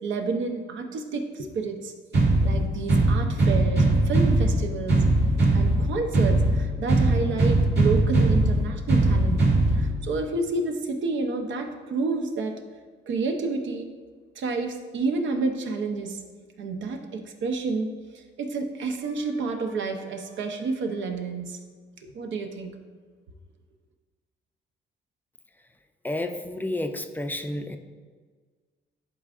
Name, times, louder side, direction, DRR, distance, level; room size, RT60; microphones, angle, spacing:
voice 1, 0.0-1.9 2.4-5.1 5.5-12.6 13.1-13.9 14.4-16.2 16.6-21.6 22.0-22.7, right 3 dB, 75° right, 4 dB, 0.8 m, -30 dB
sound 1, 2.1-10.1, right 2 dB, 55° right, 1.8 m, -21 dB
voice 2, 26.0-27.8, left 1 dB, 10° left, 7 dB, 0.5 m, -30 dB
10.5 x 3.8 x 2.5 m, 1.5 s
cardioid pair, 90°, 20 cm